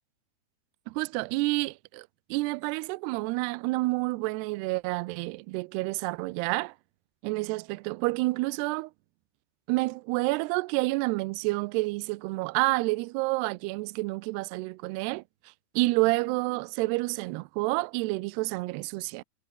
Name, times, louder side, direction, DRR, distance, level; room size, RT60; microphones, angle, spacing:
voice 1, 0.9-6.7 7.2-8.9 9.7-15.2 15.8-19.2, right 23 dB, 90° right, 2.3 m, -29 dB
omnidirectional pair, 5.5 m